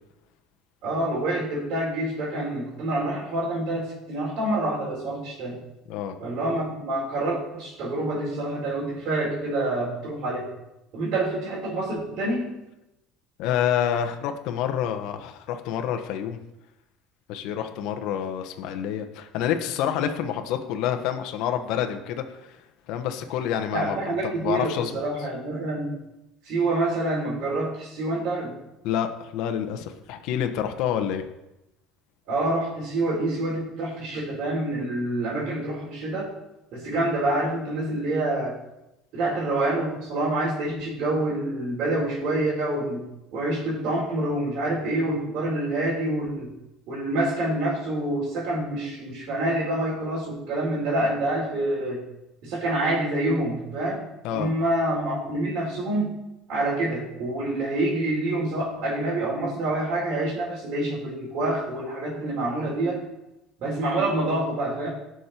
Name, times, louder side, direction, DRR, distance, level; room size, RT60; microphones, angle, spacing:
voice 1, 0.8-5.6 6.2-10.5 10.9-12.5 23.7-26.0 26.4-28.5 32.3-36.3 36.7-38.6 39.1-43.0 43.3-46.5 46.9-52.0 52.4-54.0 54.3-56.1 56.5-63.0 63.6-64.9, right 1 dB, 60° right, -6 dB, 4.6 m, -27 dB
voice 2, 13.4-16.4 17.3-22.6 22.9-25.0 28.8-31.2 54.2-54.5, left 9 dB, 65° left, 6 dB, 1.2 m, -28 dB
18.0 x 6.5 x 4.5 m, 0.91 s
cardioid pair, 130°, 0 cm